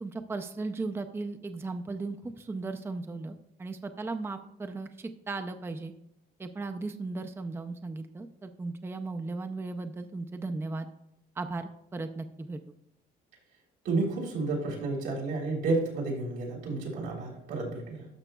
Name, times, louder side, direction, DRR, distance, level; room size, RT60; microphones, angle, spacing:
voice 1, 0.0-5.9 6.4-10.9 11.4-12.6, right 3 dB, 15° right, 7 dB, 0.5 m, -36 dB
voice 2, 13.8-18.1, right 3 dB, 90° right, -3 dB, 3.3 m, -31 dB
12.0 x 6.7 x 2.3 m, 0.83 s
cardioid pair, 110°, 17 cm